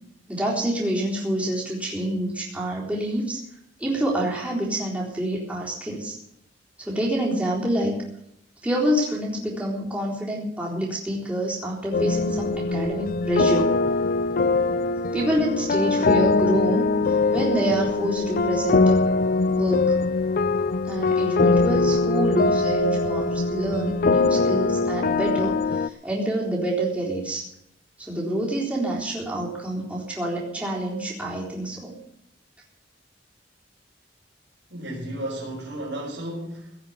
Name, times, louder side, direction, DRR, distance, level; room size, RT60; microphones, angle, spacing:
voice 1, 0.3-3.4 3.8-6.2 6.8-7.9 8.6-13.7 15.1-16.8 17.3-19.0 19.5-19.8 20.9-27.4 28.0-31.9, right 1 dB, 10° right, -5 dB, 3.9 m, -27 dB
sound 1, 11.9-25.9, left 3 dB, 50° left, 0.5 m, -22 dB
voice 2, 34.7-36.8, right 1 dB, 85° right, -6 dB, 4.7 m, -33 dB
17.5 x 6.3 x 9.6 m, 0.76 s
head